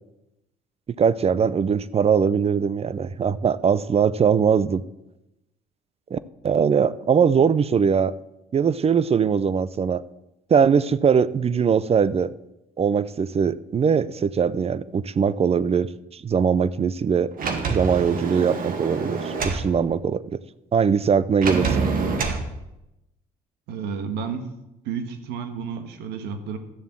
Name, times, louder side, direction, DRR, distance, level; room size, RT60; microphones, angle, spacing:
voice 1, 1.0-4.8 6.1-6.2 6.4-8.1 8.5-10.0 10.5-12.3 12.8-17.3 17.7-20.4 20.7-21.8, right 6 dB, 35° right, 18 dB, 0.6 m, -21 dB
Sliding door, 17.4-19.7 21.4-22.4, right 4 dB, 55° right, 2.1 m, -26 dB
voice 2, 23.7-24.5 24.8-26.6, right 6 dB, 80° right, 7 dB, 1.6 m, -31 dB
13.0 x 7.3 x 7.4 m, 0.91 s
supercardioid pair, 70°, 17 cm